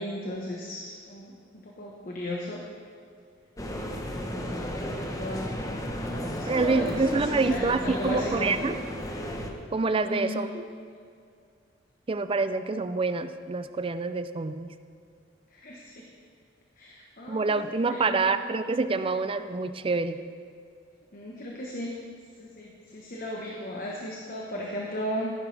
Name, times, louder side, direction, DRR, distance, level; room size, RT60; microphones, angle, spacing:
voice 1, 0.0-2.6 4.0-5.5 6.1-8.5 9.9-10.4 15.5-16.1 16.8-17.5 17.9-18.3 21.1-22.0 22.4-25.3, equal, 50° left, -2 dB, 1.2 m, -36 dB
sound 1, 3.6-9.5, equal, 20° left, 0.9 m, -34 dB
voice 2, 6.5-8.8 9.7-10.7 12.1-14.7 17.3-20.2, right 3 dB, 30° right, 11 dB, 0.4 m, -27 dB
14.5 x 11.0 x 3.4 m, 2.3 s
head